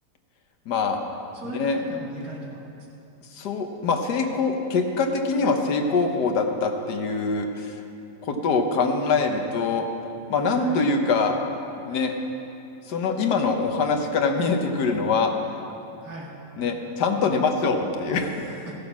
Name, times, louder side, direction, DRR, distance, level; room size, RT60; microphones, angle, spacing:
voice 1, 0.7-1.0 1.5-1.8 3.3-7.8 8.2-9.9 10.3-11.4 11.9-12.1 12.9-15.6 16.6-18.8, left 4 dB, 70° left, 4 dB, 1.6 m, -24 dB
voice 2, 1.3-2.6 10.5-10.8 16.0-16.4 18.7-18.8, right 2 dB, 55° right, -5 dB, 2.5 m, -37 dB
15.0 x 8.5 x 6.1 m, 2.8 s
omnidirectional pair, 1.8 m